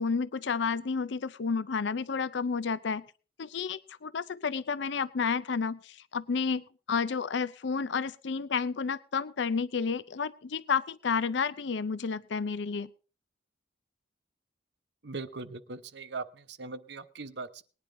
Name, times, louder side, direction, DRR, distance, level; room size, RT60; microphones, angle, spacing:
voice 1, 0.0-3.0 3.4-12.9, left 5 dB, 70° left, 16 dB, 0.5 m, -31 dB
voice 2, 15.0-17.6, right 3 dB, 65° right, 12 dB, 0.8 m, -40 dB
19.5 x 10.5 x 3.7 m, 0.37 s
head